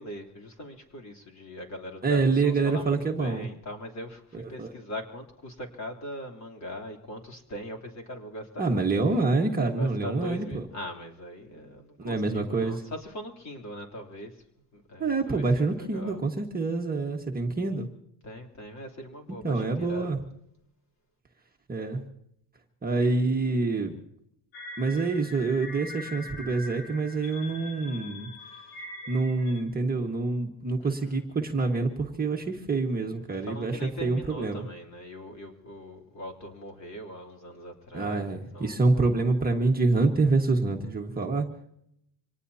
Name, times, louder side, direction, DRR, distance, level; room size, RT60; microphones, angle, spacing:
voice 1, 0.0-8.8 9.7-14.4 14.7-15.4 15.7-16.2 18.2-20.1 30.8-31.2 33.5-38.9, equal, 35° left, 2 dB, 3.4 m, -41 dB
voice 2, 2.0-3.5 4.3-4.7 8.6-10.7 12.0-12.8 15.0-17.9 19.4-20.2 21.7-22.0 22.8-23.9 24.8-28.3 29.1-34.6 37.9-41.5, right 3 dB, 20° right, 1 dB, 1.5 m, -26 dB
sound 1, 24.5-29.6, left 2 dB, 85° left, 6.8 m, -43 dB
26.0 x 18.5 x 2.8 m, 0.75 s
cardioid pair, 130°, 48 cm